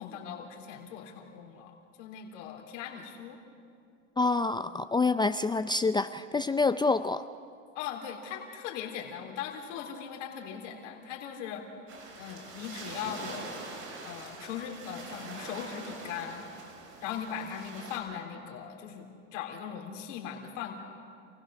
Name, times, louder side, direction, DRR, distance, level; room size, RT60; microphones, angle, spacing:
voice 1, 0.0-3.4 7.7-11.6 12.2-13.7 14.1-16.5 17.0-20.7, left 8 dB, 75° left, 2 dB, 3.7 m, -39 dB
voice 2, 4.2-7.2, left 3 dB, 10° left, 11 dB, 0.4 m, -27 dB
sound 1, 11.9-18.0, right 3 dB, 55° right, 6.7 m, -44 dB
28.5 x 16.5 x 6.5 m, 2.3 s
hypercardioid pair, 95°, 36 cm